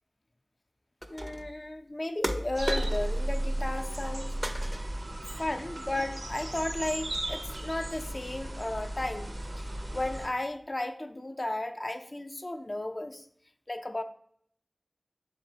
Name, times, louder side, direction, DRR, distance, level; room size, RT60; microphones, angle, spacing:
sound 1, 1.0-1.6 2.2-3.3 3.6-4.1 4.4-5.1, equal, 20° right, 0.4 m, -36 dB
voice 1, 1.1-4.6 5.4-13.3 13.7-14.0, left 1 dB, 45° left, 7 dB, 0.3 m, -34 dB
sound 2, 2.6-10.3, right 1 dB, 85° right, 0.5 m, -35 dB
4.0 x 3.6 x 2.7 m, 0.65 s
wide cardioid pair, 50°, 0 cm